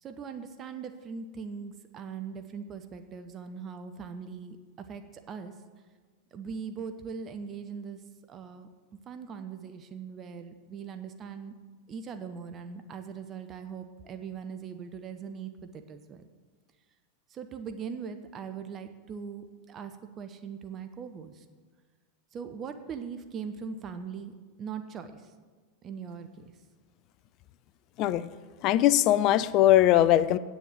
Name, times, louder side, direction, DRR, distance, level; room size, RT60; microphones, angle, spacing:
voice 1, 0.0-4.6 4.9-5.5 6.3-8.0 8.3-8.7 9.1-11.5 11.9-16.2 17.3-21.4 22.3-25.3 25.8-26.5, right 6 dB, 30° right, 8 dB, 0.8 m, -40 dB
voice 2, 28.6-30.4, left 13 dB, 40° left, 16 dB, 0.4 m, -21 dB
9.0 x 7.2 x 7.9 m, 1.4 s
figure-of-eight pair, 90°, 0 cm